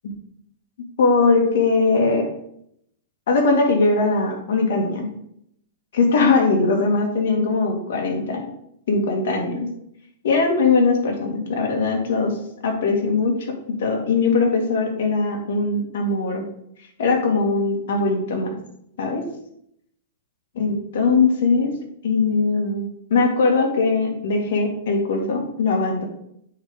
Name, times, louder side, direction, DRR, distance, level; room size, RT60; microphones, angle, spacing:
voice 1, 1.0-2.3 3.3-5.1 5.9-8.5 8.9-9.7 10.2-12.4 12.6-16.5 17.0-18.6 19.0-19.2 20.6-21.7 22.0-26.0, left 3 dB, 70° left, 1 dB, 2.1 m, -20 dB
7.9 x 3.6 x 5.3 m, 0.72 s
hypercardioid pair, 145°, 0 cm